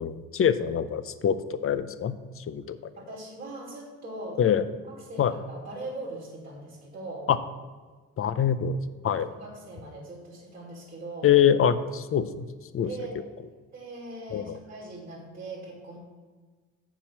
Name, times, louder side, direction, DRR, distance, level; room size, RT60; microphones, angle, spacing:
voice 1, 0.0-1.4 1.6-2.8 4.4-4.6 5.2-5.3 7.3-7.4 8.2-8.8 9.0-9.3 11.2-12.5 12.7-12.9 14.3-14.6, left 8 dB, 45° left, 13 dB, 0.6 m, -24 dB
voice 2, 3.0-4.4 4.9-7.3 9.0-11.3 12.8-13.2 13.7-16.0, right 2 dB, 30° right, -4 dB, 2.5 m, -40 dB
7.1 x 5.0 x 7.2 m, 1.4 s
cardioid pair, 90°, 30 cm